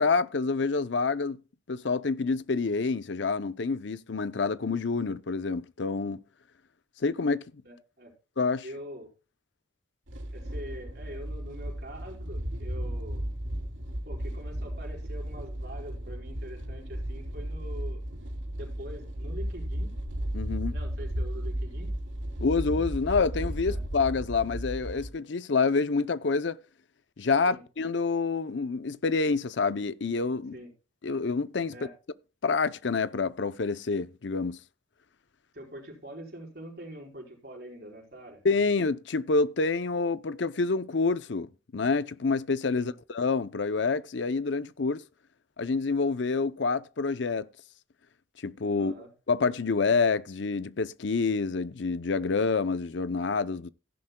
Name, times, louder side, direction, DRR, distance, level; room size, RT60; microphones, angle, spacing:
voice 1, 0.0-1.4 1.7-6.2 7.0-7.4 8.4-8.7 20.3-20.8 22.4-26.6 27.2-30.6 31.0-31.7 32.4-34.6 38.4-45.0 45.6-47.5 48.4-48.9 49.3-53.7, left 4 dB, 70° left, 0.6 m, -27 dB
voice 2, 7.6-8.1 8.6-9.1 10.3-13.2 14.0-18.0 18.5-19.9 20.7-21.9 23.6-23.8 27.5-27.6 30.5-30.7 31.7-31.9 35.5-38.4 42.8-42.9 48.7-49.1, equal, 55° right, 4.6 m, -44 dB
sound 1, 10.1-25.1, equal, 85° right, 3.1 m, -34 dB
15.5 x 11.0 x 2.3 m
head